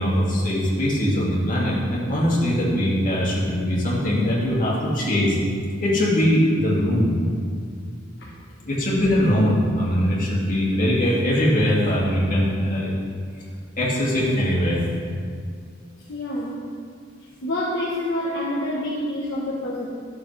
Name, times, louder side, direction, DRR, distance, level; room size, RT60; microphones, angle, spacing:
voice 1, 0.0-5.4 5.8-7.1 8.6-12.9 13.8-14.8, equal, 40° left, -6 dB, 2.5 m, -21 dB
voice 2, 16.1-16.6 17.4-19.9, left 1 dB, 60° left, -6 dB, 1.2 m, -27 dB
13.0 x 7.1 x 3.4 m, 2.1 s
head